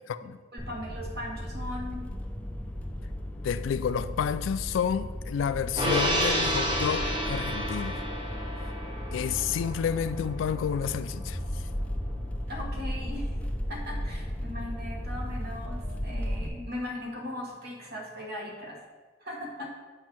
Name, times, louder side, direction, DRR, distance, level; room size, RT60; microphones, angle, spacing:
voice 1, 0.5-2.1 8.6-8.7 12.5-13.3 13.7-18.8 19.2-19.7, left 1 dB, 55° right, 1.2 m, -39 dB
sound 1, 0.6-16.5, equal, 5° left, 0.5 m, -35 dB
voice 2, 3.4-8.0 9.1-11.7, left 7 dB, 80° left, 0.3 m, -30 dB
Gong, 5.8-12.4 12.7-12.9, equal, 25° right, 1.1 m, -31 dB
7.3 x 2.7 x 5.8 m
head